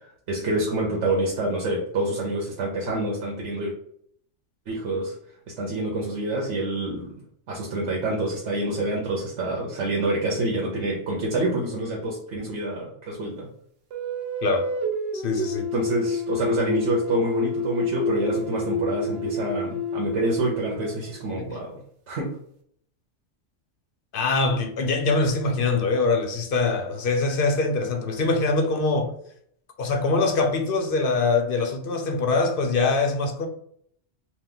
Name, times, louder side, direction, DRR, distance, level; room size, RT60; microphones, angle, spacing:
voice 1, 0.0-3.7 4.7-5.1 5.5-7.1 7.5-13.5 15.7-21.8 22.1-22.3, right 2 dB, 80° right, 1.1 m, -27 dB
sound 1, 13.9-21.3, left 2 dB, 60° right, 0.9 m, -28 dB
voice 2, 15.1-15.7 24.1-29.1 29.8-33.5, left 3 dB, 60° left, 0.7 m, -23 dB
4.2 x 2.3 x 3.8 m
omnidirectional pair, 1.2 m